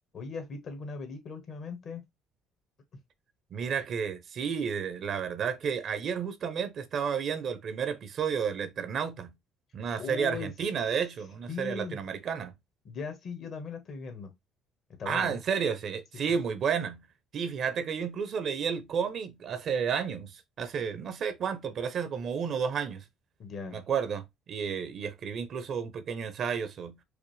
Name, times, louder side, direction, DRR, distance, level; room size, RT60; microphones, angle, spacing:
voice 1, 0.1-2.0 10.0-10.5 11.5-12.0 12.8-14.3 15.0-15.4 23.4-23.8, left 4 dB, 55° left, 1.3 m, -38 dB
voice 2, 3.5-9.3 9.7-12.5 15.1-17.0 17.3-23.0 23.7-27.0, right 7 dB, 55° right, 0.7 m, -31 dB
4.9 x 2.0 x 3.2 m
supercardioid pair, 75°, 0 cm